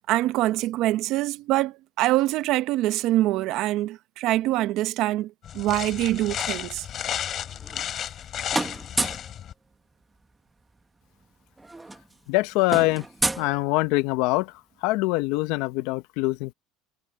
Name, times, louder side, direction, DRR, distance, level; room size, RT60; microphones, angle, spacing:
voice 1, 0.1-6.8, right 16 dB, 55° right, 0.9 m, -24 dB
sound 1, 5.4-9.5, left 10 dB, 40° left, 3.1 m, -33 dB
sound 2, 7.5-8.2 8.5-9.3 10.7-10.8 11.0-11.2 11.5-14.2, right 2 dB, 10° right, 1.2 m, -30 dB
voice 2, 12.3-13.1 13.4-14.5 14.8-16.5, left 21 dB, 70° left, 0.9 m, -24 dB
supercardioid pair, 130°, 0 cm